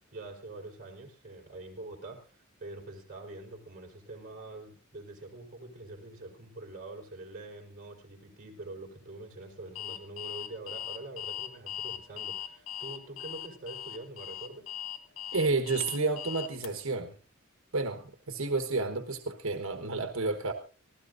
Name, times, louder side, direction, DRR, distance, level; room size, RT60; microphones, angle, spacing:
voice 1, 0.1-14.8, right 2 dB, 40° right, -1 dB, 4.3 m, -45 dB
Alarm, 9.8-16.7, left 10 dB, 80° left, 1.3 m, -39 dB
voice 2, 15.3-17.2 17.7-20.5, right 3 dB, 80° right, 6 dB, 1.3 m, -30 dB
24.5 x 16.0 x 2.6 m, 0.36 s
head